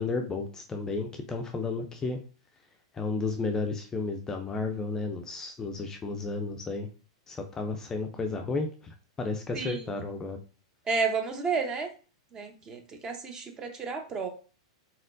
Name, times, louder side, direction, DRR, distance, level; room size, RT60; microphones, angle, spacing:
voice 1, 0.0-2.2 2.9-6.9 7.3-10.4, left 3 dB, 20° left, 4 dB, 0.5 m, -32 dB
voice 2, 9.5-10.0 10.9-11.9 12.3-14.3, right 4 dB, 25° right, 5 dB, 0.9 m, -31 dB
4.2 x 4.2 x 2.6 m, 0.37 s
hypercardioid pair, 125°, 3 cm